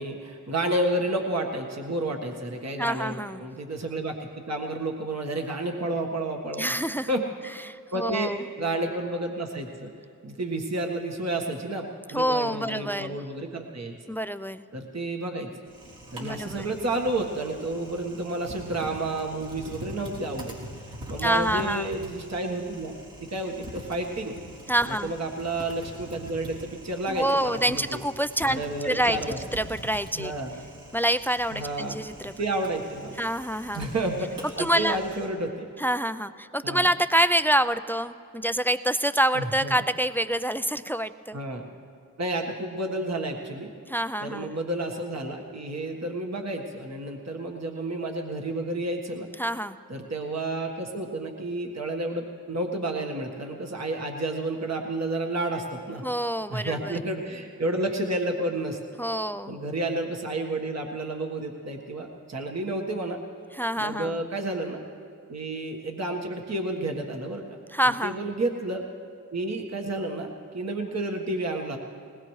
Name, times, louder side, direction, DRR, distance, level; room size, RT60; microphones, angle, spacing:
voice 1, 0.0-6.7 7.1-7.3 7.9-9.9 10.2-13.9 14.7-15.5 16.1-20.5 21.1-22.9 23.3-24.4 24.9-28.0 28.4-29.4 30.1-30.7 31.5-32.0 32.4-33.2 33.7-35.7 36.6-36.9 39.3-39.7 41.3-41.6 42.2-43.7 44.2-49.3 49.9-56.0 56.5-58.8 59.5-63.2 63.8-64.8 65.3-67.6 67.8-68.8 69.3-71.8, right 2 dB, 50° right, 2 dB, 1.5 m, -31 dB
voice 2, 2.8-3.4 6.6-7.1 7.6-8.4 12.1-13.2 14.1-14.6 16.2-16.7 21.2-21.9 24.7-25.1 27.1-29.2 29.5-30.3 30.9-32.3 33.2-33.8 34.6-35.0 35.8-41.4 43.9-44.5 49.4-49.8 56.0-57.0 59.0-59.6 63.5-64.2 67.7-68.2, right 1 dB, 5° left, 13 dB, 0.4 m, -26 dB
Typing, 15.7-35.3, right 1 dB, 80° right, 3.1 m, -44 dB
20.0 x 19.5 x 3.2 m, 2.5 s
cardioid pair, 45°, 33 cm